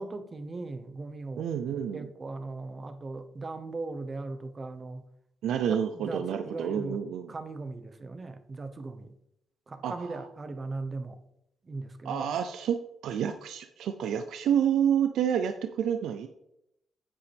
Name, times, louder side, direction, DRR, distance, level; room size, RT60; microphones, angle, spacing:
voice 1, 0.0-1.5 1.9-5.0 5.7-7.0 7.3-9.2 9.7-11.2 11.6-12.3, right 3 dB, 35° right, 9 dB, 1.0 m, -38 dB
voice 2, 1.4-2.1 5.4-7.3 9.8-10.2 12.1-16.3, right 8 dB, 80° right, 8 dB, 0.5 m, -29 dB
9.8 x 8.1 x 3.5 m, 0.83 s
cardioid pair, 70°, 0 cm